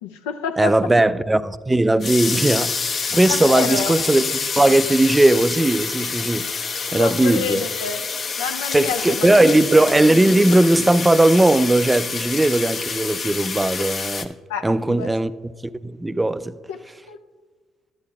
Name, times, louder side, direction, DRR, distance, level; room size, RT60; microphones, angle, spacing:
voice 1, 0.0-0.7 3.3-4.0 6.8-8.1 8.4-9.6 14.5-15.1 16.7-16.8 17.1-17.2, left 6 dB, 85° left, 0.4 m, -28 dB
voice 2, 0.6-6.5 6.9-7.6 8.7-14.3 14.6-15.3 15.6-16.5, right 2 dB, 15° right, 0.4 m, -18 dB
sound 1, 2.0-14.2, left 5 dB, 45° left, 0.6 m, -27 dB
12.0 x 9.7 x 2.4 m
hypercardioid pair, 55°, 0 cm